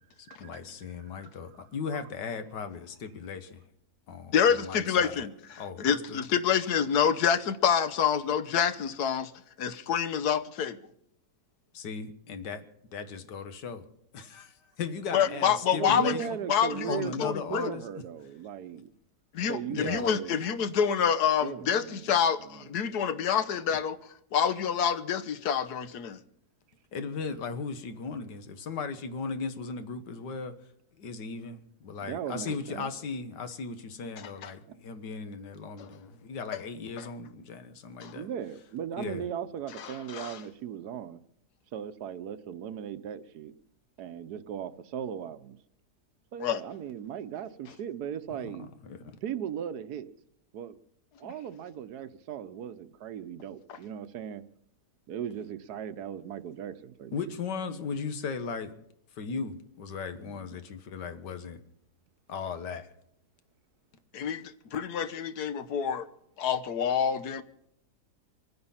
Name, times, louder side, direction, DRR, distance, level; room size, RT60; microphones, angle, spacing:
voice 1, 0.4-3.6 4.1-5.1 5.6-6.2 11.7-12.7 12.9-13.9 14.1-16.2 16.9-17.8 19.7-20.0 26.9-30.5 31.0-38.3 39.0-39.3 48.4-49.2 57.1-58.7 59.2-61.6 62.3-62.9, left 5 dB, 85° left, 1.9 m, -37 dB
voice 2, 4.3-9.3 9.6-10.8 15.1-17.7 19.3-24.0 24.3-26.2 34.2-34.5 35.8-35.9 38.0-38.1 39.8-40.4 46.4-46.6 64.1-66.1 66.4-67.4, left 8 dB, 70° left, 1.4 m, -27 dB
voice 3, 15.8-18.9 19.5-20.4 21.4-22.1 22.4-22.7 32.0-32.9 38.1-41.2 41.7-43.5 44.0-45.6 46.3-48.7 49.2-50.1 50.5-50.8 51.2-54.4 55.1-57.3 60.2-60.5, right 9 dB, 70° right, 1.3 m, -37 dB
24.0 x 9.6 x 5.6 m
omnidirectional pair, 1.8 m